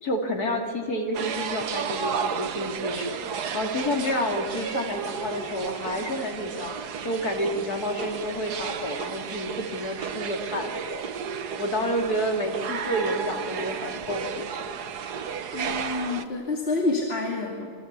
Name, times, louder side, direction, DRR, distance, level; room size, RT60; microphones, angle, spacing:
voice 1, 0.0-6.7 7.0-11.0 11.6-14.5, equal, 75° left, 2 dB, 3.3 m, -29 dB
sound 1, 1.1-16.2, right 6 dB, 85° right, 1.6 m, -33 dB
voice 2, 15.5-17.7, left 2 dB, 40° left, -1 dB, 2.9 m, -28 dB
27.0 x 24.0 x 8.3 m, 2.1 s
omnidirectional pair, 1.7 m